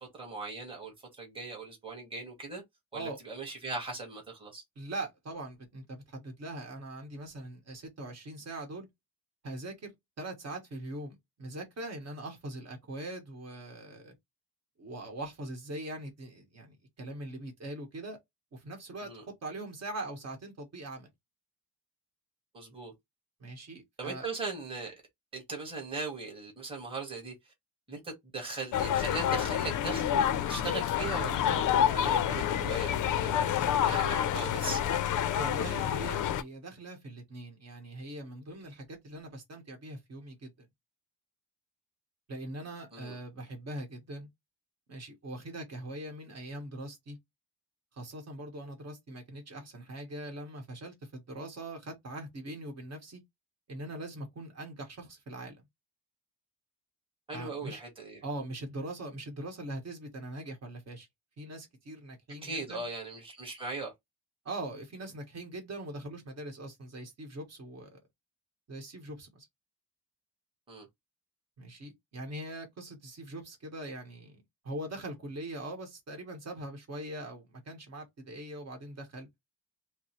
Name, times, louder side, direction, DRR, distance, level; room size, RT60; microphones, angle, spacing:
voice 1, 0.1-2.6 2.9-4.6 19.0-19.2 22.5-22.9 24.0-24.9 25.3-27.5 27.9-34.8 42.9-43.2 57.3-58.2 62.4-63.9 70.7-70.9, right 3 dB, 15° right, 1.5 m, -39 dB
voice 2, 4.7-8.9 9.4-14.1 14.8-18.2 18.5-21.1 23.4-24.3 35.4-40.7 42.3-44.3 44.9-47.2 47.9-53.2 53.7-55.6 57.3-57.8 58.2-61.1 61.4-62.8 64.4-68.0 68.7-69.5 71.6-79.3, right 1 dB, 40° right, 1.4 m, -42 dB
sound 1, 28.7-36.4, left 10 dB, 50° left, 0.5 m, -28 dB
4.9 x 2.0 x 3.0 m
cardioid pair, 165°, 39 cm